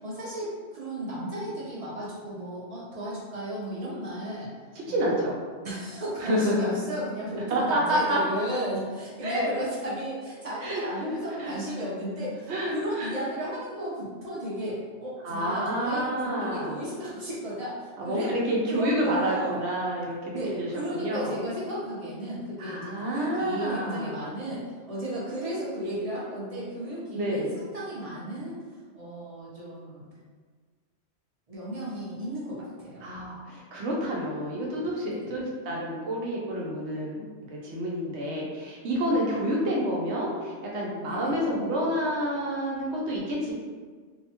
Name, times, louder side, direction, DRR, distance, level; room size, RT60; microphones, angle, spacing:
voice 1, 0.0-4.5 4.9-5.2 5.6-19.6 20.3-28.6 28.9-30.0 31.5-33.0 35.1-35.3 41.0-41.4, right 1 dB, 40° right, -7 dB, 0.7 m, -34 dB
voice 2, 4.9-5.4 6.2-6.7 7.5-8.2 9.2-9.5 10.6-11.1 11.4-11.6 12.5-13.1 15.2-16.8 18.0-21.3 22.6-24.3 27.1-27.5 33.0-43.5, equal, 75° right, -3 dB, 0.9 m, -29 dB
2.7 x 2.1 x 2.8 m, 1.5 s
omnidirectional pair, 1.2 m